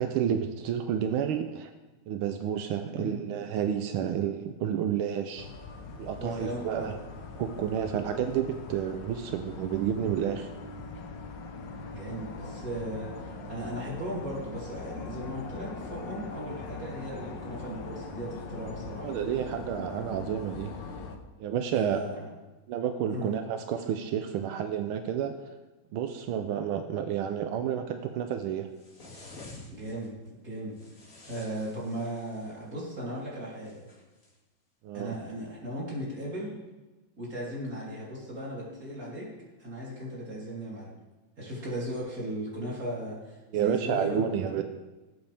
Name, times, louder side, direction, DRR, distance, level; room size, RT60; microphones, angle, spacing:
voice 1, 0.0-1.7 2.1-5.5 6.0-6.9 7.4-10.5 19.0-20.7 21.4-22.1 22.7-25.3 25.9-28.7 34.8-35.2 43.5-44.6, right 9 dB, 90° right, 6 dB, 1.6 m, -30 dB
voice 2, 2.9-3.2 6.2-6.9 11.9-19.2 21.8-22.3 23.1-23.4 29.7-30.2 30.4-30.8 31.3-33.8 34.9-36.6 37.2-39.3 39.6-40.9 41.4-44.5, right 1 dB, 40° right, -6 dB, 4.1 m, -37 dB
sound 1, 5.4-21.2, left 4 dB, 65° left, 1.7 m, -41 dB
sound 2, 28.8-30.1 30.7-32.6 33.6-34.3, left 2 dB, 40° left, 2.5 m, -49 dB
19.0 x 8.0 x 3.5 m, 1.2 s
omnidirectional pair, 2.3 m